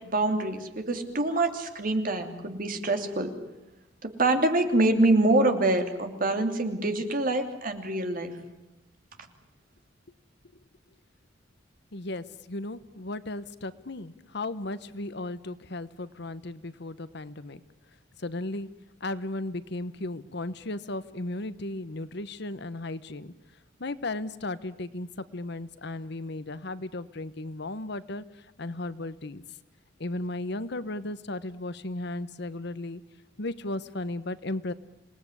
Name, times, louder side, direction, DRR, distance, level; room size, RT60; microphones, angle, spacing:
voice 1, 0.1-3.3 4.0-8.4, right 2 dB, 45° right, 5 dB, 2.9 m, -25 dB
voice 2, 11.9-17.6 18.2-18.7 19.0-23.3 23.8-29.4 30.0-33.0 33.4-34.7, left 2 dB, 60° left, 14 dB, 1.1 m, -35 dB
27.5 x 19.0 x 10.0 m, 0.95 s
head